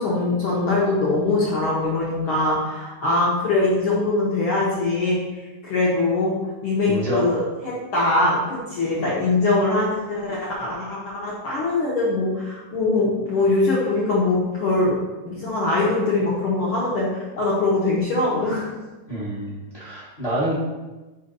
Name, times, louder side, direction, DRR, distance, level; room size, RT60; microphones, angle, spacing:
voice 1, 0.0-5.2 5.6-6.3 6.6-15.0 15.2-18.7, left 2 dB, 75° left, -5 dB, 1.2 m, -22 dB
voice 2, 6.8-7.2 19.1-20.6, right 1 dB, 50° left, -8 dB, 0.4 m, -27 dB
4.9 x 4.2 x 5.2 m, 1.2 s
omnidirectional pair, 3.9 m